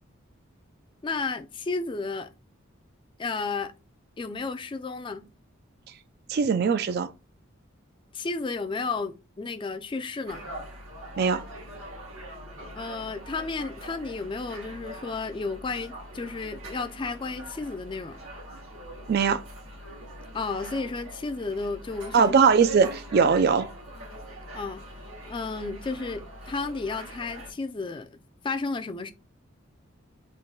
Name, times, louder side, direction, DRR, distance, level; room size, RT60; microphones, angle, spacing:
voice 1, 1.0-2.3 3.2-3.7 4.2-5.3 8.1-10.5 12.7-18.2 20.3-22.3 24.5-24.8 25.3-28.2 28.4-29.1, left 4 dB, 25° left, 0.3 m, -32 dB
voice 2, 6.3-7.1 11.2-11.4 19.1-19.4 22.1-23.7, right 5 dB, 50° right, 0.3 m, -21 dB
sound 1, 10.3-27.5, right 1 dB, 85° right, 1.6 m, -42 dB
3.8 x 2.2 x 3.7 m
head